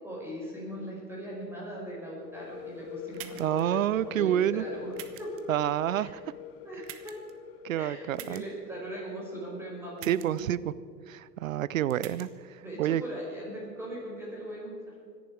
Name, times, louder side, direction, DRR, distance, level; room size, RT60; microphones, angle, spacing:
voice 1, 0.0-3.7 3.9-4.9 5.2-5.4 6.0-6.1 6.6-7.2 7.8-10.5 12.6-14.7, right 1 dB, 5° right, -4 dB, 4.8 m, -39 dB
sound 1, 2.2-9.8, left 9 dB, 35° left, 0.7 m, -44 dB
sound 2, 3.1-3.6 4.9-5.4 6.8-7.3 8.1-8.4 10.0-10.4 11.9-12.3, right 13 dB, 25° right, 1.1 m, -44 dB
voice 2, 3.4-4.6 5.5-6.2 7.6-8.4 10.0-10.6 11.1-13.0, right 11 dB, 55° right, 18 dB, 0.6 m, -28 dB
25.5 x 11.0 x 4.8 m, 2.3 s
figure-of-eight pair, 100°, 50 cm